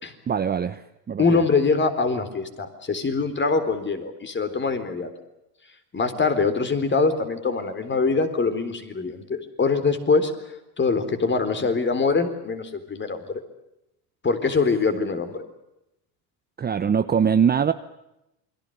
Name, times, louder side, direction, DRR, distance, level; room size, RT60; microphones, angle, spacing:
voice 1, 0.3-1.4 16.6-17.7, right 7 dB, 20° right, 11 dB, 0.8 m, -22 dB
voice 2, 1.2-5.1 5.9-10.3 10.8-13.4 14.2-15.4, left 4 dB, 20° left, 9 dB, 3.9 m, -23 dB
28.5 x 22.0 x 6.6 m, 0.89 s
supercardioid pair, 115°, 49 cm